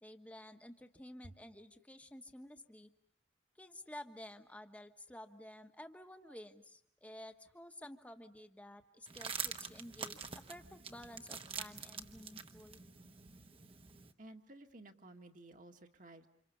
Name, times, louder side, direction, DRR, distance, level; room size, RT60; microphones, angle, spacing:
voice 1, 0.0-2.9 3.6-12.8, left 1 dB, 10° left, 6 dB, 1.3 m, -52 dB
sound 1, 9.1-14.1, right 6 dB, 30° right, 1.1 m, -46 dB
voice 2, 14.2-16.3, right 2 dB, 45° right, 5 dB, 1.8 m, -55 dB
29.5 x 27.0 x 6.8 m, 0.68 s
head